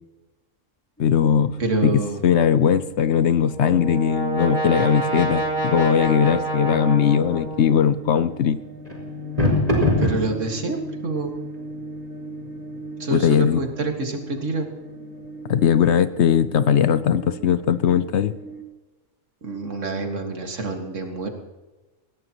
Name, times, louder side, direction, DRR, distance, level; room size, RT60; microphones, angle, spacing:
voice 1, 1.0-1.6 1.8-8.6 13.1-13.6 15.5-18.3, left 8 dB, 65° left, 13 dB, 0.9 m, -19 dB
sound 1, 1.0-18.6, right 4 dB, 10° left, 3.5 m, -41 dB
voice 2, 1.6-2.2 10.0-11.4 13.0-14.7 19.4-21.3, right 3 dB, 65° right, 4 dB, 2.2 m, -27 dB
Brass instrument, 3.2-8.0, right 2 dB, 35° left, 2.3 m, -28 dB
sound 2, 5.5-15.6, left 2 dB, 30° right, 5.6 m, -30 dB
20.5 x 16.0 x 3.0 m, 1.1 s
omnidirectional pair, 1.4 m